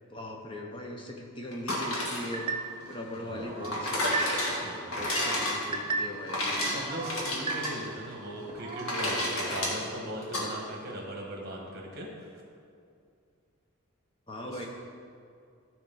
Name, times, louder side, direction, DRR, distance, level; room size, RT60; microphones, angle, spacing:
voice 1, 0.1-2.5 2.9-4.2 4.7-6.7 14.3-14.7, left 1 dB, 25° left, 1 dB, 0.7 m, -40 dB
sound 1, 1.5-10.5, left 1 dB, 85° left, 1.8 m, -32 dB
sound 2, 2.3-2.9 3.4-4.6 5.0-6.3 6.7-8.1 8.5-9.0, right 4 dB, 25° right, 0.3 m, -36 dB
voice 2, 3.2-5.3 6.6-12.4 14.4-14.7, right 1 dB, 50° right, 0 dB, 1.4 m, -40 dB
13.5 x 4.5 x 3.9 m, 2.4 s
head